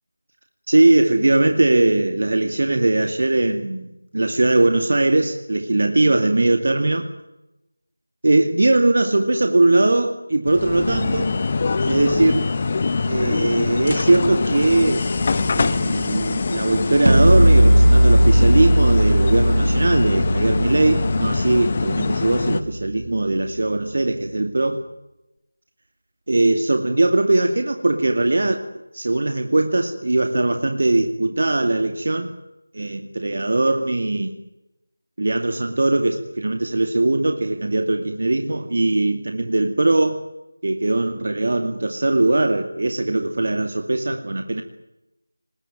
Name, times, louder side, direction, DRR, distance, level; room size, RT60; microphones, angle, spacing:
voice 1, 0.7-3.9 4.1-7.1 8.2-11.4 11.8-12.5 13.1-15.1 15.5-24.8 26.3-28.6 28.9-32.3 32.7-34.3 35.2-40.2 40.6-44.6, right 2 dB, 50° right, 6 dB, 2.3 m, -20 dB
sound 1, 10.5-22.6, left 4 dB, 30° left, 1.1 m, -24 dB
sound 2, 15.1-22.0, equal, ahead, 5.0 m, -40 dB
sound 3, 17.1-23.0, right 1 dB, 75° right, 2.4 m, -17 dB
26.0 x 20.5 x 9.3 m, 0.93 s
figure-of-eight pair, 170°, 0 cm